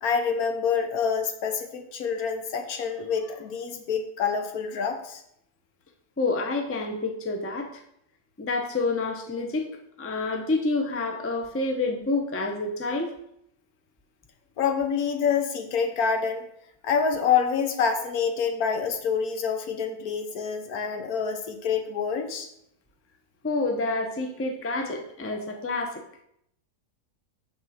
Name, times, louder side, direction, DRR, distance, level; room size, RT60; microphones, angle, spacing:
voice 1, 0.0-5.2 14.6-16.5 16.8-22.5, left 6 dB, 75° left, 6 dB, 1.3 m, -27 dB
voice 2, 6.2-7.8 8.4-9.7 10.0-13.2 23.4-26.0, left 3 dB, 15° left, 4 dB, 0.5 m, -28 dB
6.3 x 4.3 x 6.3 m, 0.74 s
omnidirectional pair, 1.6 m